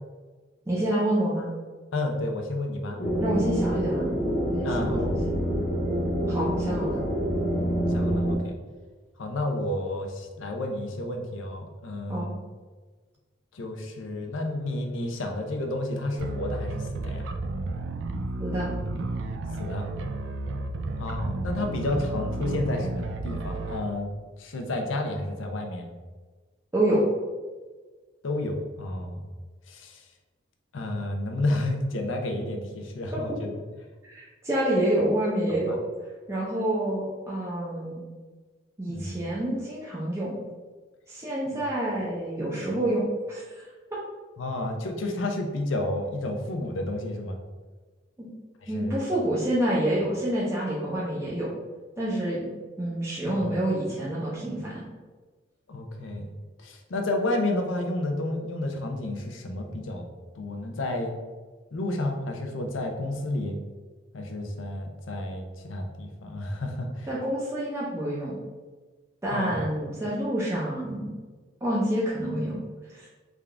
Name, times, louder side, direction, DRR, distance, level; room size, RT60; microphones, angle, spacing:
voice 1, 0.7-1.5 3.2-4.1 4.5-5.3 6.3-7.0 12.1-12.3 18.4-18.7 26.7-27.0 34.1-35.8 36.3-38.0 38.8-40.4 41.1-43.7 48.2-48.3 48.7-51.5 52.0-52.5 52.8-54.8 67.1-68.4 69.2-71.1 71.6-72.6 72.9-73.1, right 1 dB, 15° right, -7 dB, 0.5 m, -28 dB
voice 2, 1.9-3.0 4.6-5.1 7.9-8.5 9.2-12.4 13.5-17.3 19.6-19.8 21.0-24.1 24.4-25.9 28.2-29.2 29.7-30.0 30.7-33.5 35.7-35.8 38.9-39.2 41.5-41.6 42.6-42.8 44.4-47.4 48.6-49.0 53.3-53.4 55.7-56.3 56.6-60.0 60.3-61.1 61.7-63.6 64.1-67.1 69.3-69.6, left 1 dB, 85° left, 3 dB, 0.6 m, -31 dB
sound 1, 3.0-8.3, equal, 65° left, 0.9 m, -26 dB
sound 2, 16.2-23.8, right 2 dB, 70° right, 0.3 m, -32 dB
3.6 x 2.4 x 3.3 m, 1.3 s
head